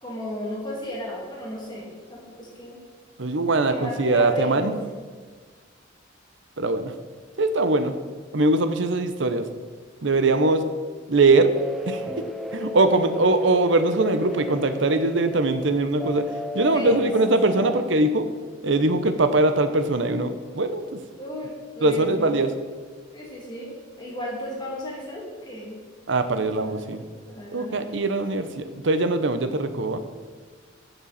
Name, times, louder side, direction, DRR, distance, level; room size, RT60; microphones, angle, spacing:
voice 1, 0.0-2.8 3.7-4.8 16.7-17.5 21.2-22.3 23.1-23.7 24.0-25.7 26.5-26.8 27.3-27.9, equal, 25° left, -4 dB, 2.4 m, -34 dB
voice 2, 3.2-4.7 6.6-6.9 7.4-7.9 8.3-9.5 10.0-10.6 11.1-11.6 11.9-12.0 12.5-16.2 16.5-18.3 18.6-20.8 21.8-22.5 26.1-27.0 27.5-30.0, right 2 dB, 65° right, 9 dB, 0.8 m, -21 dB
sound 1, 11.5-17.9, left 1 dB, ahead, 0.5 m, -34 dB
13.0 x 7.0 x 4.2 m, 1.5 s
head